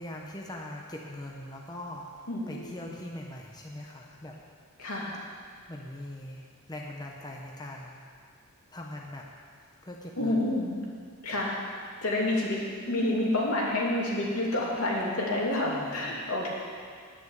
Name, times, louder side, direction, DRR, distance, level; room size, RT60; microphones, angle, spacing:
voice 1, 0.0-4.4 5.7-8.0 8.7-9.3 9.8-10.5 15.6-16.2, left 1 dB, 20° left, -1 dB, 1.0 m, -41 dB
voice 2, 2.3-2.9 4.8-5.1 10.2-10.8 11.2-11.5 12.0-12.6 12.9-16.5, left 1 dB, 75° left, -4 dB, 3.0 m, -28 dB
10.0 x 8.9 x 8.2 m, 2.1 s
head